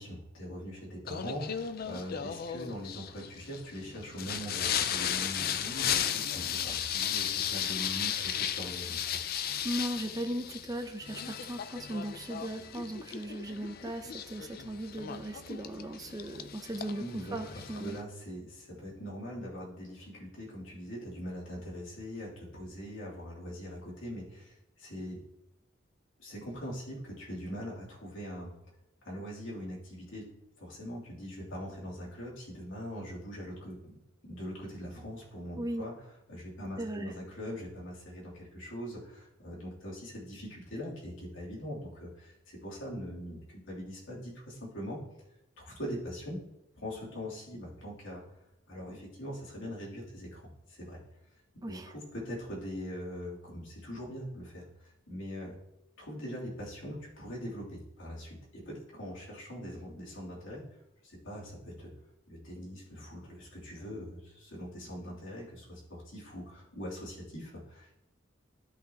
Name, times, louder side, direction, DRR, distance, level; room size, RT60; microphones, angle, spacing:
voice 1, 0.0-9.2 16.9-25.2 26.2-28.5 29.0-30.2 30.6-33.9 34.2-35.9 36.3-45.0 45.6-46.4 46.7-48.2 48.7-50.4 50.7-51.0 51.7-55.5 56.0-60.6 61.0-61.9 62.3-68.1, equal, 85° left, -5 dB, 3.1 m, -42 dB
Singing, 1.1-18.0, left 9 dB, 50° left, 0.5 m, -35 dB
voice 2, 9.6-17.0 17.3-18.0 35.6-35.9 36.8-37.1 51.6-51.9, right 1 dB, 20° right, 6 dB, 0.6 m, -37 dB
13.0 x 5.6 x 2.9 m, 0.89 s
head